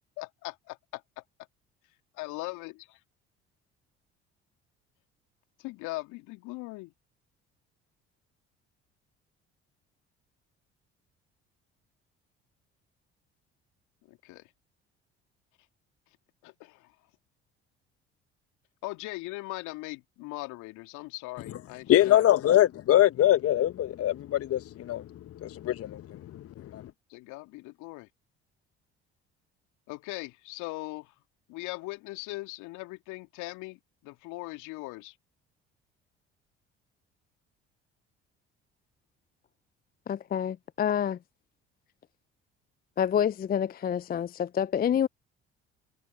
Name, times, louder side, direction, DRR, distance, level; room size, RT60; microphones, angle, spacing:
voice 1, 0.2-1.2 2.2-3.0 5.6-6.9 14.1-14.4 16.4-16.9 18.8-22.3 27.1-28.1 29.9-31.1 31.5-35.1, left 21 dB, 65° left, 2.6 m, -40 dB
voice 2, 21.9-25.0 25.4-26.2 26.7-26.8, left 12 dB, 45° left, 1.0 m, -23 dB
voice 3, 40.1-41.2 43.0-45.1, left 9 dB, 30° left, 0.5 m, -27 dB
figure-of-eight pair, 55°, 32 cm